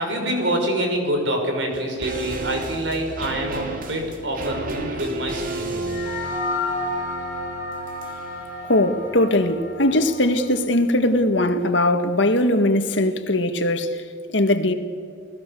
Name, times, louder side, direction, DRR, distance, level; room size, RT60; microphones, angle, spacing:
voice 1, 0.0-5.9, right 1 dB, 85° right, 5.3 m, -26 dB
sound 1, 1.7-11.1 11.3-11.4, right 2 dB, 50° right, 2.6 m, -34 dB
sound 2, 5.9-10.5, left 2 dB, 40° left, 5.3 m, -31 dB
voice 2, 8.7-13.9 14.3-14.7, left 1 dB, 80° left, 1.8 m, -20 dB
29.5 x 19.0 x 7.0 m
head